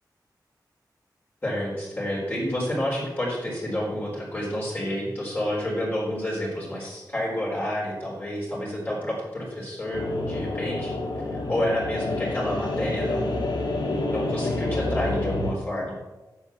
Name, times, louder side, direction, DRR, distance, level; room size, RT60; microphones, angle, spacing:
voice 1, 1.4-11.0 11.3-16.0, left 1 dB, 30° left, -5 dB, 3.9 m, -29 dB
sound 1, 9.9-15.5, left 2 dB, 85° left, 1.7 m, -28 dB
9.3 x 6.8 x 7.2 m, 1.1 s
wide cardioid pair, 125°, 7 cm